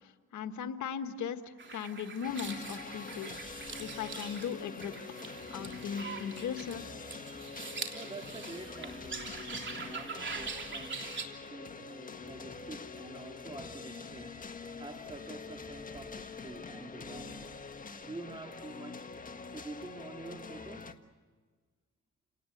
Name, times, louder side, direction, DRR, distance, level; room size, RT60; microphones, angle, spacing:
voice 1, 0.0-3.3 3.8-4.9 5.5-6.8, left 7 dB, 70° left, 1.5 m, -38 dB
sound 1, 1.6-11.2, right 4 dB, 40° right, 3.3 m, -43 dB
sound 2, 2.2-20.9, left 4 dB, 25° left, 1.5 m, -45 dB
voice 2, 7.9-14.4 14.8-17.5 18.0-19.1 19.5-21.0, right 2 dB, 15° right, 2.1 m, -47 dB
30.0 x 18.5 x 8.0 m
cardioid pair, 90°, 30 cm